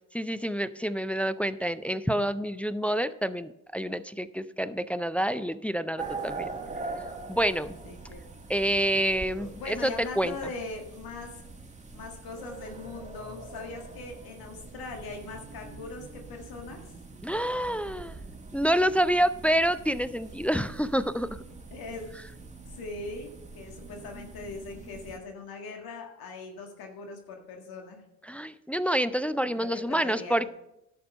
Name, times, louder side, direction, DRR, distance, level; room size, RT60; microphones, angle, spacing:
voice 1, 0.1-6.5 7.3-7.8 8.5-10.3 17.2-18.2 18.5-21.4 28.2-30.5, equal, 5° left, 13 dB, 0.3 m, -28 dB
sound 1, 6.0-25.2, right 3 dB, 15° right, 2.0 m, -43 dB
voice 2, 7.8-8.2 8.9-11.3 11.9-16.9 21.7-22.1 22.6-28.0 29.6-30.5, left 3 dB, 65° left, 2 dB, 1.9 m, -41 dB
11.0 x 6.8 x 5.4 m, 0.85 s
hypercardioid pair, 65°, 40 cm